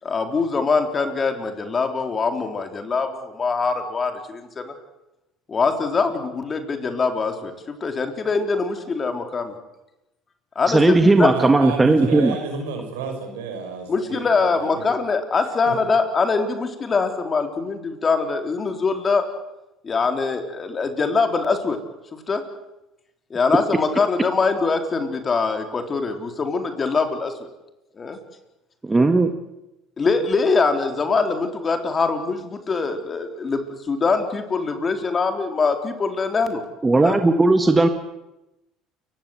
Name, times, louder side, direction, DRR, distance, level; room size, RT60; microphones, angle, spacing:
voice 1, 0.0-4.7 5.5-9.6 10.6-11.3 13.9-19.3 19.8-21.8 22.1-22.4 23.3-27.5 27.9-28.2 30.0-36.6 37.0-37.2, left 4 dB, 35° left, 6 dB, 4.0 m, -23 dB
voice 2, 10.7-12.3 28.8-29.3 36.8-37.9, right 3 dB, 20° right, 7 dB, 1.8 m, -16 dB
voice 3, 11.3-14.9 15.7-15.8, right 4 dB, 80° right, 5 dB, 5.7 m, -31 dB
29.0 x 16.5 x 8.0 m, 0.94 s
hypercardioid pair, 70°, 0 cm